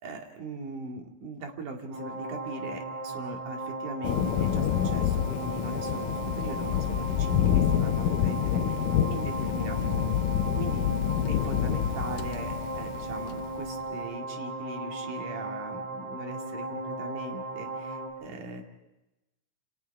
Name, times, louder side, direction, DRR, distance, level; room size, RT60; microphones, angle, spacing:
voice 1, 0.0-10.9 11.3-18.6, right 3 dB, 80° right, 2 dB, 4.0 m, -40 dB
sound 1, 1.9-18.1, right 2 dB, 55° right, 5.9 m, -36 dB
Thunder, 4.0-13.7, left 10 dB, 90° left, 2.5 m, -28 dB
28.5 x 28.5 x 3.6 m, 0.98 s
omnidirectional pair, 3.6 m